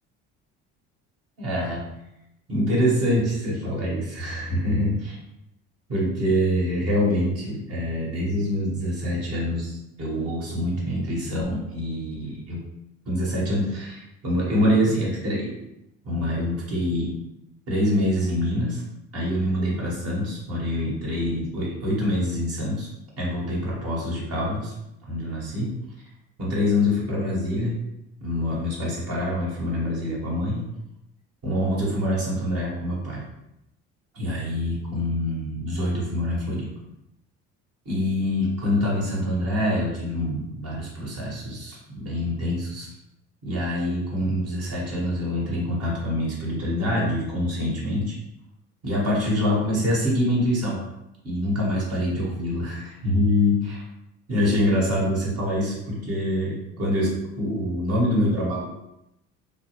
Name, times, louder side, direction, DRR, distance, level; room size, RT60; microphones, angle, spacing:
voice 1, 1.4-1.8 2.5-5.2 5.9-12.6 13.1-15.6 16.0-17.1 17.7-18.8 19.1-22.9 23.2-24.7 25.0-25.7 26.4-27.7 28.2-30.6 31.4-33.2 34.1-36.7 37.8-42.9 43.4-48.1 48.8-50.8 51.2-53.8 54.3-58.7, left 1 dB, 45° right, -4 dB, 1.2 m, -25 dB
2.6 x 2.0 x 2.9 m, 0.86 s
supercardioid pair, 75°, 33 cm